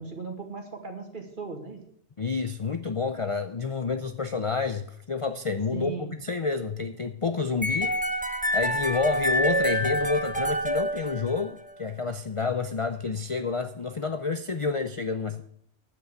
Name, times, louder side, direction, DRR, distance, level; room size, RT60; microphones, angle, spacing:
voice 1, 0.0-1.9 5.7-6.1, right 4 dB, 45° right, 2.3 m, -37 dB
voice 2, 2.2-15.4, left 4 dB, 35° left, 0.5 m, -29 dB
sound 1, 7.6-11.7, equal, 5° right, 0.9 m, -27 dB
9.6 x 8.2 x 7.9 m
omnidirectional pair, 1.2 m